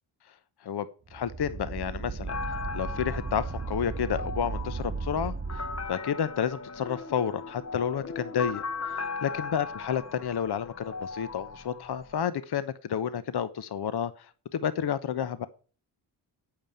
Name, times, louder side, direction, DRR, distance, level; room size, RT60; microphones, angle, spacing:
voice 1, 0.6-2.4 2.7-5.6 5.9-15.5, left 8 dB, 50° left, 14 dB, 1.0 m, -31 dB
sound 1, 1.1-5.9, right 4 dB, 30° right, 1.7 m, -35 dB
sound 2, 2.3-12.3, left 4 dB, 30° left, 1.2 m, -38 dB
8.9 x 7.0 x 8.1 m, 0.39 s
supercardioid pair, 40°, 50 cm